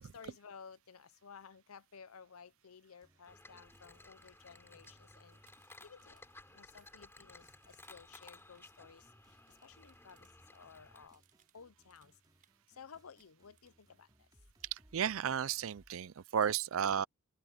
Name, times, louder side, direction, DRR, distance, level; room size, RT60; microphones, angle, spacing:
voice 1, 0.1-5.4 5.8-6.2 6.5-9.0 9.6-10.3 10.5-11.2 11.5-12.1 12.8-14.1, left 6 dB, 75° left, 0.7 m, -55 dB
sound 1, 3.0-15.9, right 1 dB, 20° right, 3.2 m, -71 dB
sound 2, 3.3-11.1, left 2 dB, 10° left, 3.8 m, -58 dB
sound 3, 3.4-3.5 3.7-3.8 4.1-10.6 10.9-12.7 13.0-13.9 16.0-16.1, right 8 dB, 40° right, 7.9 m, -73 dB
voice 2, 14.7-17.1, right 8 dB, 65° right, 0.4 m, -33 dB
head